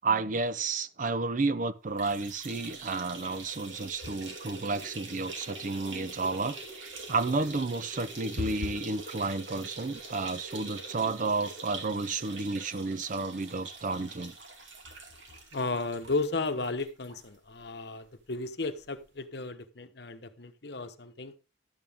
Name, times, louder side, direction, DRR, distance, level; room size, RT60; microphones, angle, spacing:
voice 1, 0.0-14.3, right 3 dB, 45° right, 0.6 m, -31 dB
sound 1, 1.9-17.3 17.6-17.7 18.0-18.1 19.1-19.2, right 3 dB, 85° right, 2.7 m, -44 dB
voice 2, 15.5-21.3, left 3 dB, 60° left, 1.0 m, -34 dB
12.0 x 9.1 x 3.6 m
head